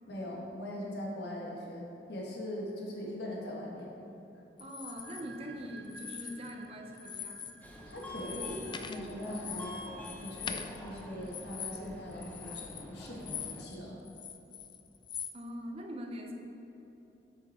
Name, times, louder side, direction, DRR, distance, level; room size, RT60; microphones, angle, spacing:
voice 1, 0.1-3.9 4.3-4.4 7.8-9.8 10.2-14.0, left 1 dB, 70° left, -3 dB, 1.5 m, -41 dB
sound 1, 4.6-5.2 5.8-6.7 6.9-7.6 7.9-13.8 14.0-15.3, left 8 dB, 25° left, 0.3 m, -43 dB
voice 2, 4.6-7.6 15.3-16.3, equal, 35° right, 2 dB, 0.8 m, -43 dB
sound 2, 4.8-12.3, right 5 dB, 70° right, 0.7 m, -56 dB
Subway metro underground, 7.6-13.6, left 1 dB, 10° left, 0.8 m, -46 dB
8.5 x 6.0 x 4.4 m, 3.0 s
head